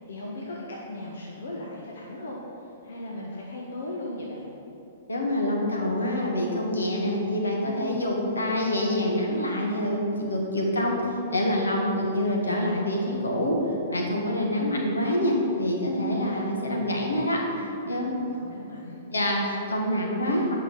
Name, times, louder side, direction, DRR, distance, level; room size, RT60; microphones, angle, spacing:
voice 1, 0.0-4.5 18.0-19.0, left 1 dB, 70° left, -3 dB, 1.3 m, -37 dB
voice 2, 5.1-11.0 11.3-13.6 13.9-17.4 17.8-18.1 19.1-20.5, left 1 dB, 85° left, -1 dB, 1.7 m, -26 dB
8.9 x 5.5 x 5.5 m, 2.8 s
figure-of-eight pair, 115°, 0 cm